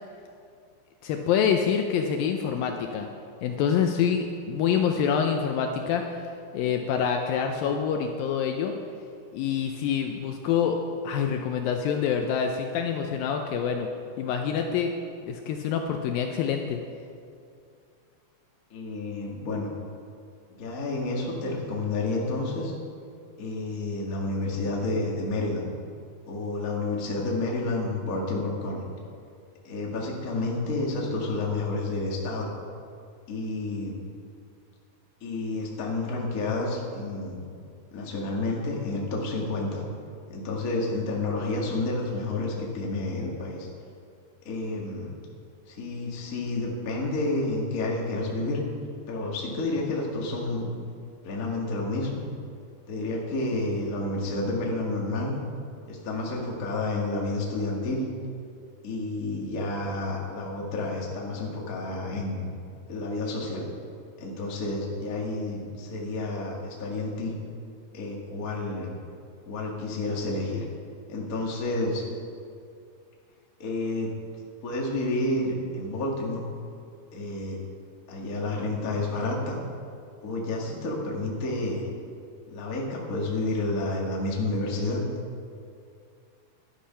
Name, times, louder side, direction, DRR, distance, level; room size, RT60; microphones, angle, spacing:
voice 1, 1.0-3.1 3.4-6.2 6.5-8.7 9.3-10.8 11.0-13.9 14.2-14.9 15.3-16.8, left 7 dB, 80° left, 4 dB, 2.2 m, -26 dB
voice 2, 18.7-19.7 20.6-22.7 23.4-25.7 26.3-28.8 29.6-32.5 33.3-34.0 35.2-37.4 37.9-39.8 40.3-43.7 44.4-45.1 45.7-48.6 49.1-50.7 51.2-52.2 52.9-55.3 55.9-58.1 58.8-62.4 62.9-63.7 64.2-67.3 67.9-68.9 69.4-70.6 71.1-72.0 73.6-74.1 74.6-76.4 77.1-77.6 78.1-79.6 80.2-81.9 82.5-85.0, left 2 dB, 35° left, -2 dB, 1.3 m, -30 dB
11.5 x 10.0 x 5.7 m, 2.4 s
omnidirectional pair, 4.5 m